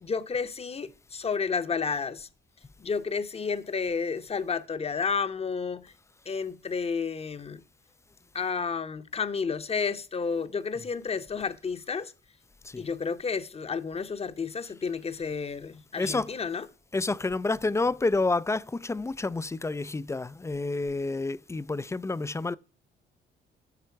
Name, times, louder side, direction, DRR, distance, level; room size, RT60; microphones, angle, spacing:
voice 1, 0.0-2.3 2.8-5.9 6.3-7.6 8.3-12.1 12.8-16.7, left 5 dB, 30° left, 0.9 m, -31 dB
voice 2, 15.9-16.3 16.9-22.5, left 3 dB, 15° left, 0.4 m, -29 dB
12.0 x 6.6 x 4.5 m
cardioid pair, 90°, 20 cm